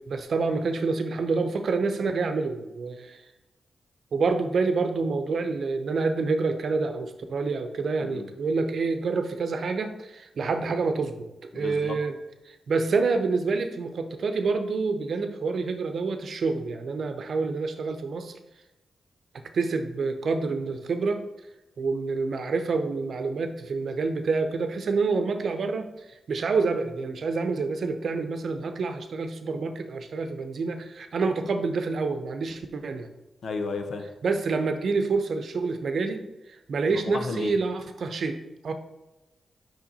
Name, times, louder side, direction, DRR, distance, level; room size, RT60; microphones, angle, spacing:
voice 1, 0.1-3.2 4.1-11.3 11.5-12.1 12.4-18.3 19.5-21.2 21.8-33.1 34.2-36.2 36.5-38.4 38.6-38.7, right 4 dB, 70° right, 7 dB, 0.8 m, -27 dB
voice 2, 11.5-12.0 33.4-34.0 36.9-37.5, left 4 dB, 70° left, 6 dB, 0.9 m, -33 dB
6.0 x 5.5 x 4.2 m, 1.0 s
supercardioid pair, 45°, 0 cm